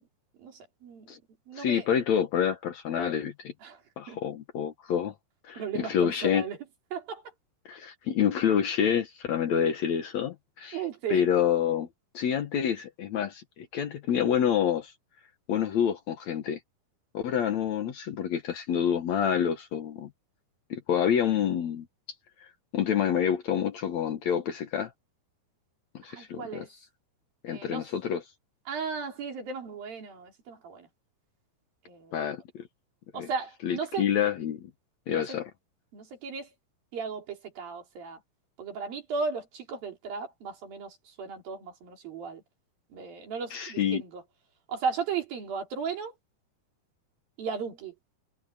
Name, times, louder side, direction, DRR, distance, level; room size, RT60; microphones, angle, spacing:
voice 1, 0.4-1.1 1.5-1.9 3.6-3.8 4.1-4.2 5.5-6.6 6.9-7.2 10.7-11.2 26.1-26.7 27.5-27.9 28.7-30.9 31.9-32.2 33.1-34.1 35.1-35.4 35.9-36.5 36.9-38.2 38.6-42.4 42.9-44.2 44.7-46.1 47.4-48.0, right 5 dB, 80° right, 5.5 m, -35 dB
voice 2, 1.6-3.5 4.0-5.1 5.4-6.5 7.7-10.8 11.1-11.9 12.1-14.9 15.5-16.6 17.1-20.1 20.7-21.9 22.4-22.5 22.7-24.9 25.9-26.7 27.4-28.2 32.1-32.6 33.1-33.3 33.6-34.7 35.1-35.5 43.5-44.0, left 8 dB, 60° left, 2.1 m, -27 dB
omnidirectional pair, 4.1 m